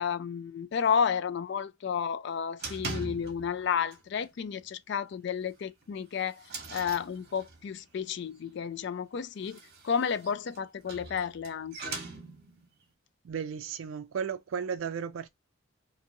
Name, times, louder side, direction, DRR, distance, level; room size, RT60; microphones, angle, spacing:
voice 1, 0.0-6.4 6.7-9.6 9.8-12.0, left 7 dB, 55° left, 0.3 m, -31 dB
sound 1, 2.6-3.6 3.9-4.3 4.6-4.7 5.1-5.2 5.8-7.8 9.3-12.7, right 3 dB, 50° right, 1.0 m, -41 dB
voice 2, 13.2-15.3, right 7 dB, 70° right, 0.4 m, -34 dB
2.6 x 2.6 x 2.6 m
head